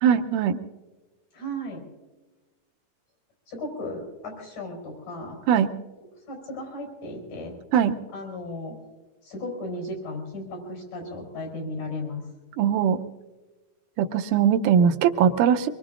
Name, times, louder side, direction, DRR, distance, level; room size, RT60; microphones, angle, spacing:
voice 1, 0.0-0.6 5.5-5.7 7.7-8.0 12.6-13.0 14.0-15.7, right 8 dB, 80° right, 7 dB, 2.3 m, -20 dB
voice 2, 1.3-1.8 3.5-5.4 6.3-7.5 8.1-8.8 9.2-12.2, left 1 dB, 85° left, 1 dB, 6.3 m, -35 dB
24.5 x 22.5 x 2.5 m, 1.2 s
omnidirectional pair, 3.7 m